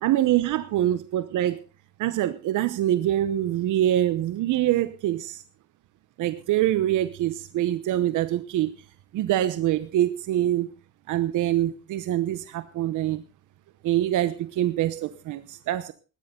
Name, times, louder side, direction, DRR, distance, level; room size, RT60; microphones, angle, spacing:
voice 1, 0.0-1.6 2.0-5.4 6.2-8.7 9.1-10.7 11.1-13.2 13.8-15.9, right 13 dB, 85° right, 12 dB, 1.0 m, -25 dB
18.5 x 12.5 x 3.8 m, 0.33 s
cardioid pair, 90°, 30 cm